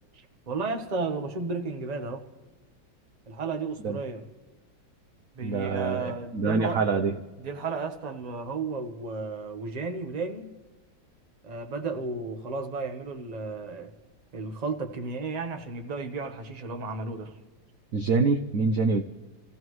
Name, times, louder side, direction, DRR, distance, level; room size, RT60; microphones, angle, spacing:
voice 1, 0.1-2.2 3.3-4.2 5.4-6.8 7.4-10.5 11.4-13.9 14.3-17.4, right 4 dB, 30° right, 5 dB, 0.9 m, -33 dB
voice 2, 5.4-7.1 17.9-19.0, right 4 dB, 60° right, 7 dB, 0.9 m, -25 dB
29.5 x 15.5 x 3.1 m, 1.2 s
omnidirectional pair, 2.1 m